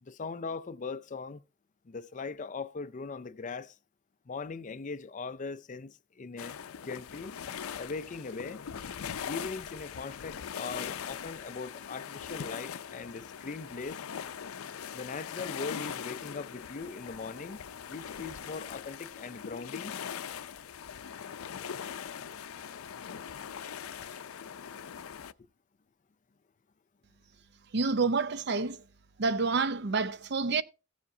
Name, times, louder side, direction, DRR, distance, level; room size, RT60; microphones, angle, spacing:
voice 1, 0.0-1.4 1.9-3.8 4.3-6.6 6.8-7.3 7.8-8.6 9.3-14.0 14.9-20.0, left 4 dB, 35° left, 0.5 m, -40 dB
sound 1, 6.4-25.3, left 8 dB, 90° left, 0.5 m, -41 dB
voice 2, 27.7-28.8 29.2-30.6, right 4 dB, 55° right, 0.6 m, -28 dB
15.5 x 7.2 x 2.7 m
head